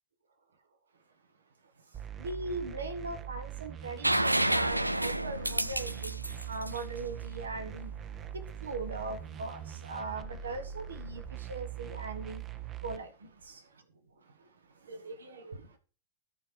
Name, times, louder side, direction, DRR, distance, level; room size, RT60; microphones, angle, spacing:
sound 1, 1.9-13.0, right 10 dB, 25° right, 0.8 m, -42 dB
voice 1, 1.9-8.0 8.3-12.5 12.8-13.8 14.2-14.6 14.8-15.8, right 2 dB, 70° right, 1.3 m, -40 dB
sound 2, 4.0-7.7 9.6-9.7, right 1 dB, 85° right, 0.4 m, -30 dB
13.0 x 4.5 x 4.9 m
figure-of-eight pair, 90°, 0 cm